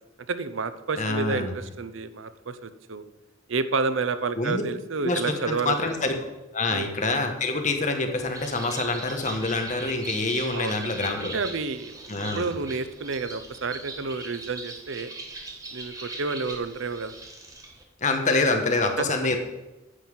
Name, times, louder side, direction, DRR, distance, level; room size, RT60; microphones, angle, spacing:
voice 1, 0.3-3.0 3.5-5.8 6.7-6.9 10.5-10.9 11.2-11.9 12.3-15.1 15.7-17.1 19.0-19.1, right 4 dB, 75° right, 12 dB, 0.7 m, -30 dB
voice 2, 1.0-1.5 4.4-4.6 5.0-6.2 6.5-11.3 12.1-12.5 18.0-19.4, left 3 dB, 35° left, 5 dB, 1.3 m, -26 dB
Bird, 8.1-17.8, right 2 dB, 15° right, 1.3 m, -40 dB
9.9 x 5.7 x 7.4 m, 1.0 s
head